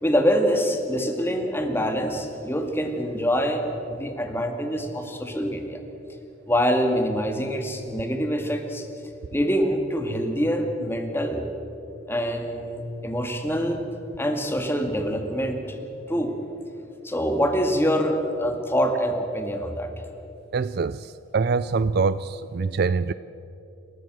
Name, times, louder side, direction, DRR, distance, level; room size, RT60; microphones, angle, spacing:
voice 1, 0.0-5.8 6.5-8.9 9.3-11.4 12.1-13.8 14.2-15.8 16.1-16.3 17.0-19.9, equal, 10° left, 2.0 m, -25 dB
voice 2, 20.5-23.1, right 4 dB, 55° right, 0.4 m, -24 dB
28.5 x 14.0 x 7.7 m
head